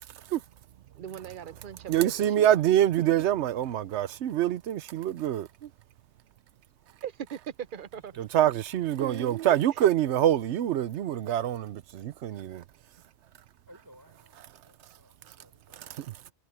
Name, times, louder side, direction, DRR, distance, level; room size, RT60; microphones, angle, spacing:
voice 1, 1.0-2.6 5.6-5.7 7.0-8.1 9.0-9.8, right 9 dB, 55° right, 0.8 m, -40 dB
voice 2, 1.9-5.5 8.2-12.6 15.7-16.1, right 11 dB, 90° right, 0.9 m, -25 dB
voice 3, 13.7-16.2, equal, 15° right, 5.6 m, -58 dB
omnidirectional pair, 1.1 m